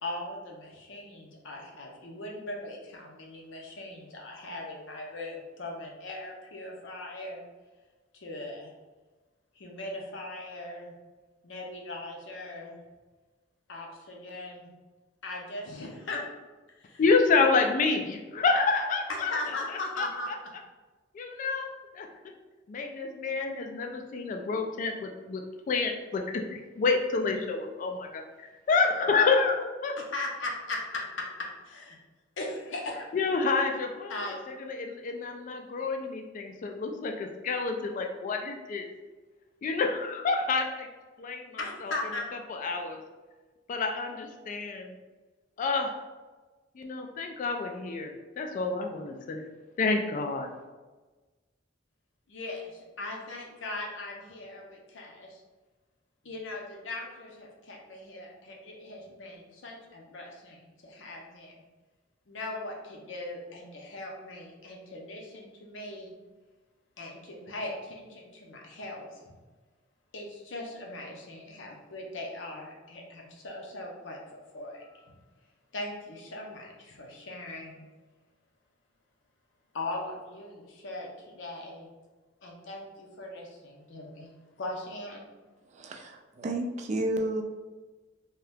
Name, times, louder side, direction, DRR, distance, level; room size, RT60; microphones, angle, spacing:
voice 1, 0.0-7.4 8.1-8.7 9.5-10.9 11.4-12.8 13.7-14.7 15.2-16.2 16.8-17.0 19.3-20.3 30.0-32.0 32.4-33.1 34.1-34.4 41.6-42.3 52.3-55.4 56.2-61.5 62.3-66.1 67.0-69.3 70.1-75.1 75.7-77.8 79.7-81.9 82.4-84.3 84.6-85.3, left 2 dB, 75° left, 0 dB, 0.7 m, -39 dB
voice 2, 17.0-19.3 20.0-20.1 21.1-22.1 22.7-25.4 25.7-28.2 28.7-30.0 33.1-34.2 34.7-38.9 39.6-40.9 41.2-41.9 42.6-43.0 43.7-45.0 45.6-46.0 46.8-49.4 49.8-50.5, left 4 dB, 45° left, 3 dB, 0.3 m, -28 dB
voice 3, 85.7-87.4, right 1 dB, 40° right, 4 dB, 0.3 m, -31 dB
2.8 x 2.3 x 3.3 m, 1.3 s
head